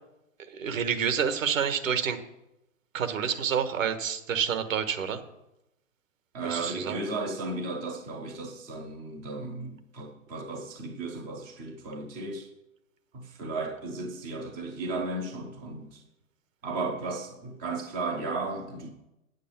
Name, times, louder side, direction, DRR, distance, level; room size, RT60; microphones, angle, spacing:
voice 1, 0.5-2.2 2.9-5.2 6.4-7.0, right 7 dB, 70° right, 9 dB, 1.4 m, -28 dB
voice 2, 6.3-12.5 13.1-16.0 16.6-18.9, right 3 dB, 10° right, 4 dB, 0.3 m, -35 dB
8.6 x 8.4 x 6.0 m, 0.89 s
hypercardioid pair, 125°, 41 cm